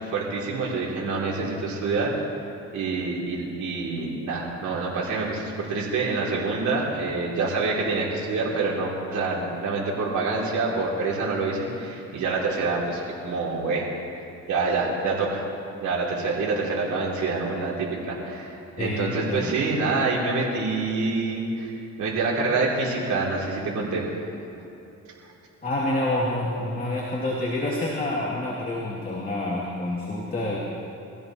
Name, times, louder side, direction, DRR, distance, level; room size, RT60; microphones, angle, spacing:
voice 1, 0.1-2.1 2.7-13.9 14.5-15.4 15.8-21.7 22.0-24.0, right 3 dB, 75° right, -5 dB, 3.2 m, -26 dB
voice 2, 18.8-19.6 25.6-30.6, left 1 dB, 30° left, -5 dB, 2.9 m, -28 dB
23.5 x 16.0 x 3.1 m, 2.9 s
cardioid pair, 90°, 30 cm